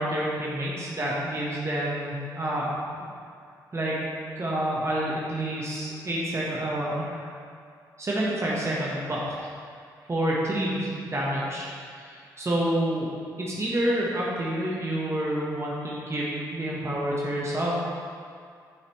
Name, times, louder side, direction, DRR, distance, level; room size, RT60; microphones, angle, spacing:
voice 1, 0.0-2.8 3.7-4.0 4.3-7.3 8.0-9.5 10.1-13.1 13.4-17.8, right 1 dB, 30° right, -5 dB, 1.3 m, -28 dB
7.4 x 5.8 x 3.2 m, 2.2 s
hypercardioid pair, 45°, 9 cm